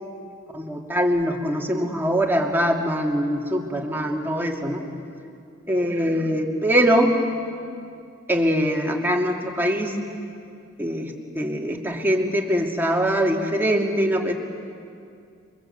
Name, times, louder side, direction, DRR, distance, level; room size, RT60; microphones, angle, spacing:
voice 1, 0.5-4.8 5.7-7.1 8.3-10.0 10.8-14.3, equal, 10° right, 0 dB, 2.7 m, -23 dB
28.0 x 24.0 x 8.3 m, 2.4 s
head